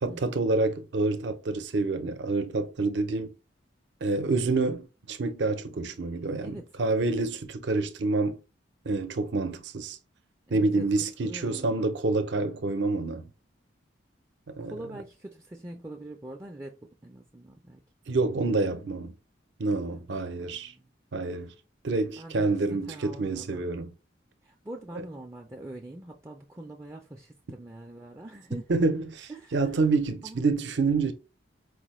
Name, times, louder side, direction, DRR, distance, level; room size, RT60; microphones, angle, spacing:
voice 1, 0.0-3.3 4.0-8.4 8.8-10.0 10.5-13.3 14.5-14.7 18.1-19.1 19.6-20.7 21.1-21.5 21.8-23.9 28.7-31.1, right 3 dB, 65° right, 0.5 m, -27 dB
voice 2, 10.5-10.9 11.2-11.9 14.6-17.8 18.5-18.6 19.7-20.9 22.2-23.6 24.4-28.7 29.3-29.7 30.2-30.4, right 1 dB, 15° right, 0.3 m, -44 dB
4.7 x 2.1 x 3.0 m
head